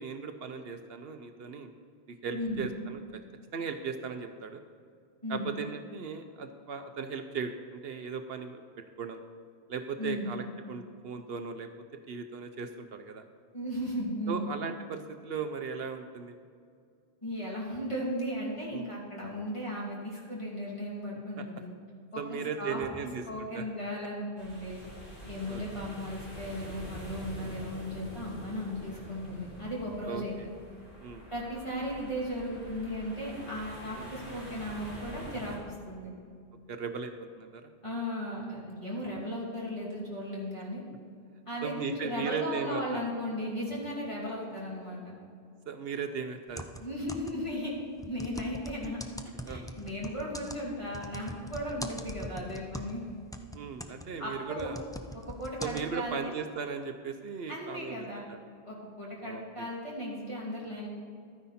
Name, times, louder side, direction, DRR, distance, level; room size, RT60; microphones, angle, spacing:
voice 1, 0.0-1.7 2.1-3.2 3.5-4.6 5.3-8.6 9.0-9.2 9.7-11.7 12.1-13.2 14.3-16.4 18.7-18.8 21.4-21.5 22.2-23.6 25.5-25.6 27.4-27.6 30.0-30.5 31.0-31.2 34.0-34.1 36.7-37.1 37.4-37.7 41.6-43.0 45.7-46.9 49.5-49.7 53.5-54.8 55.6-58.4 59.2-59.7, right 5 dB, 70° right, 7 dB, 0.9 m, -37 dB
voice 2, 2.3-2.7 5.2-5.5 10.0-10.3 13.5-14.5 17.2-21.7 22.1-22.8 23.3-24.8 25.3-30.3 31.3-36.1 37.8-40.8 41.5-45.1 46.8-47.7 48.0-49.0 49.5-53.0 54.2-54.7 55.3-56.3 57.5-58.2 58.7-60.9, equal, 30° left, -5 dB, 2.9 m, -36 dB
sound 1, 24.4-35.6, equal, 50° left, 3.2 m, -46 dB
sound 2, 46.5-47.5 48.0-53.0 53.3-55.9, equal, 5° left, 0.4 m, -42 dB
12.5 x 9.6 x 4.2 m, 2.3 s
omnidirectional pair, 1.1 m